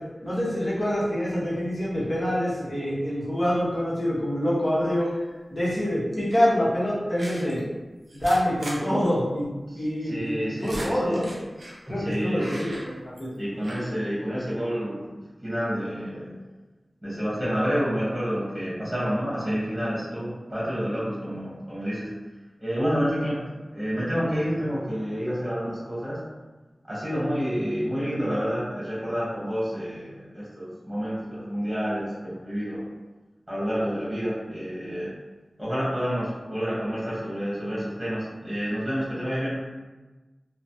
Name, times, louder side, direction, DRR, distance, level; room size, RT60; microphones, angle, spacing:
voice 1, 0.2-5.1 5.5-7.6 8.1-9.5 9.7-11.3 11.9-12.9 13.2-13.3, equal, 35° left, -8 dB, 1.1 m, -26 dB
sound 1, 5.0-5.4 6.1-6.3 7.2-7.6 8.1-8.8 9.0-9.1 9.4-9.5 10.2-11.8 12.4-13.4 13.6-13.8, right 1 dB, 70° right, 0.6 m, -39 dB
voice 2, 9.7-11.2 11.8-12.5 13.4-15.1 15.4-16.3 17.0-22.1 22.6-23.4 23.7-26.2 26.9-32.8 33.5-35.1 35.6-39.6, equal, 15° right, -10 dB, 1.3 m, -29 dB
3.0 x 2.1 x 2.7 m, 1.2 s
wide cardioid pair, 80°, 0 cm